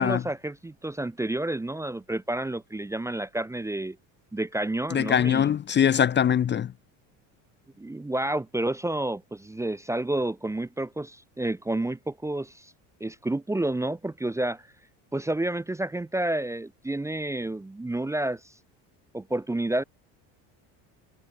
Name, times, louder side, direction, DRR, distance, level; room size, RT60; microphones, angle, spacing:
voice 1, 0.0-4.0 4.3-5.5 7.8-12.7 13.0-14.7 15.1-18.4 19.1-19.8, right 1 dB, 5° right, 0.8 m, -30 dB
voice 2, 4.9-6.7, left 9 dB, 25° left, 0.8 m, -22 dB
supercardioid pair, 120°, 40 cm